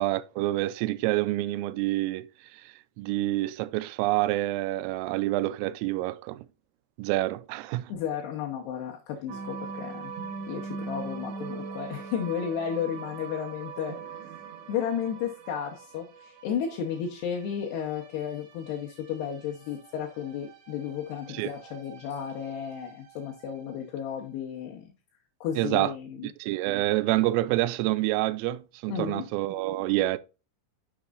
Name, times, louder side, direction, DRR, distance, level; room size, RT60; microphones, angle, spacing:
voice 1, 0.0-2.3 2.5-6.4 7.0-7.9 21.3-21.5 25.6-25.9 26.2-30.2, right 17 dB, 85° right, 3.2 m, -27 dB
voice 2, 7.9-10.1 10.5-14.3 14.7-24.9 25.4-26.3 28.9-29.3, left 8 dB, 70° left, 2.6 m, -33 dB
sound 1, 9.3-23.8, right 5 dB, 65° right, 3.4 m, -42 dB
10.0 x 6.2 x 2.5 m
omnidirectional pair, 5.7 m